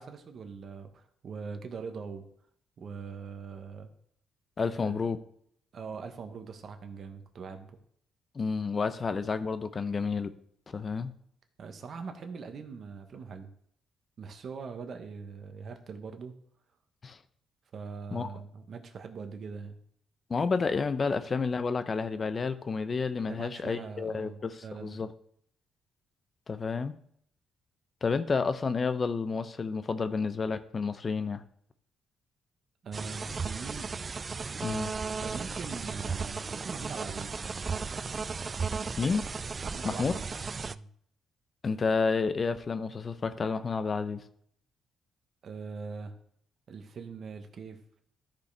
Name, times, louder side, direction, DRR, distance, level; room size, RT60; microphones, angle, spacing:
voice 1, 0.0-2.3 2.8-3.9 4.7-5.0 5.7-7.7 11.6-13.5 14.2-16.3 17.7-19.8 23.3-25.0 32.8-33.9 35.2-37.4 39.6-40.3 40.6-40.9 45.4-46.1 46.7-47.8, right 5 dB, 55° right, 6 dB, 1.1 m, -42 dB
voice 2, 4.6-5.2 8.3-10.3 10.7-11.1 17.0-17.2 18.1-18.3 20.3-25.1 26.5-27.0 28.0-31.4 34.6-34.9 39.0-39.2 39.8-40.1 41.6-44.2, left 4 dB, 35° left, 11 dB, 0.7 m, -30 dB
sound 1, 32.9-40.7, right 5 dB, 35° right, 0.3 m, -35 dB
13.5 x 5.2 x 3.4 m, 0.66 s
cardioid pair, 90°, 0 cm